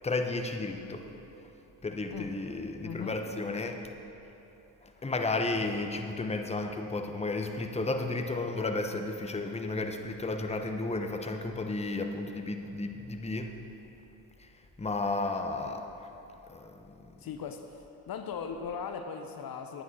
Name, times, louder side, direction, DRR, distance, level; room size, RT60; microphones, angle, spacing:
voice 1, 0.0-1.0 1.8-3.8 4.8-13.5 14.8-16.1 16.5-16.7 17.0-17.1, left 2 dB, 15° left, 5 dB, 0.9 m, -33 dB
voice 2, 2.8-3.2 17.2-17.7 18.1-19.8, left 6 dB, 55° left, 6 dB, 0.8 m, -38 dB
9.3 x 9.0 x 5.4 m, 2.9 s
supercardioid pair, 55°, 43 cm